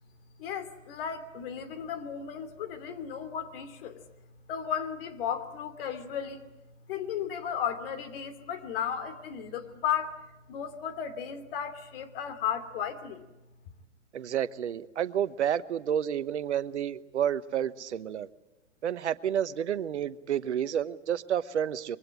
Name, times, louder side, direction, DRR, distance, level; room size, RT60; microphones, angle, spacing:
voice 1, 0.4-4.0 4.5-6.5 6.9-10.2 10.5-13.2, left 8 dB, 50° left, 9 dB, 2.7 m, -34 dB
voice 2, 14.1-18.3 18.8-22.0, right 9 dB, 65° right, 14 dB, 1.1 m, -30 dB
24.5 x 23.0 x 8.8 m, 0.99 s
figure-of-eight pair, 115°, 37 cm